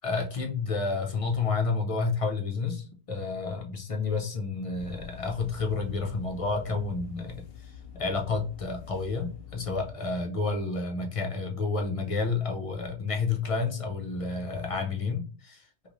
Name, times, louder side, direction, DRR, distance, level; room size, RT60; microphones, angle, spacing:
voice 1, 0.0-7.4 7.9-15.6, left 4 dB, 50° left, 2 dB, 0.4 m, -30 dB
sound 1, 4.7-9.9, left 7 dB, 65° left, 0.8 m, -46 dB
3.0 x 2.4 x 2.5 m, 0.39 s
omnidirectional pair, 1.1 m